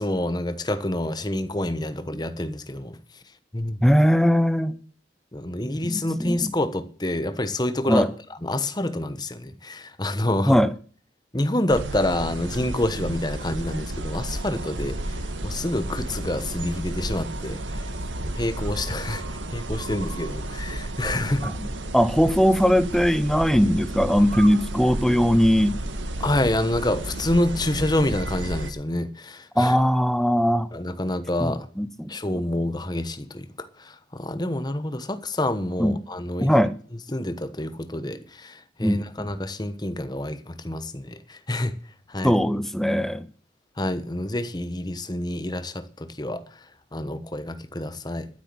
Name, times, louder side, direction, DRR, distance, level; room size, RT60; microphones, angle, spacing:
voice 1, 0.0-3.0 3.5-3.8 5.3-10.6 11.3-17.9 18.2-21.5 26.2-29.8 30.7-31.7 32.1-36.6 37.1-41.7 42.1-42.4 43.8-46.6 46.9-48.3, left 1 dB, 20° left, 1.1 m, -28 dB
voice 2, 3.8-4.8 5.6-6.5 7.9-8.1 10.5-10.7 21.4-21.7 21.9-25.8 29.6-30.7 31.4-32.1 35.8-35.9 36.4-36.7 38.8-39.3 42.2-43.3, equal, ahead, 0.7 m, -20 dB
sound 1, 11.7-28.7, right 1 dB, 85° right, 1.8 m, -32 dB
13.0 x 8.2 x 6.2 m
head